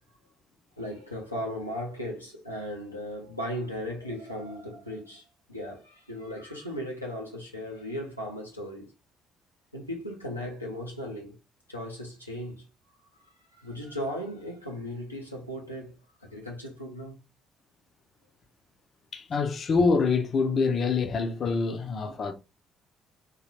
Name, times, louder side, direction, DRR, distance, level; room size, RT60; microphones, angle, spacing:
voice 1, 0.8-8.9 9.7-11.4 11.7-12.7 13.2-17.2, equal, 90° left, 0.7 m, -37 dB
voice 2, 19.1-22.3, left 4 dB, 45° left, 0.7 m, -25 dB
3.8 x 3.1 x 3.0 m
figure-of-eight pair, 45°, 0 cm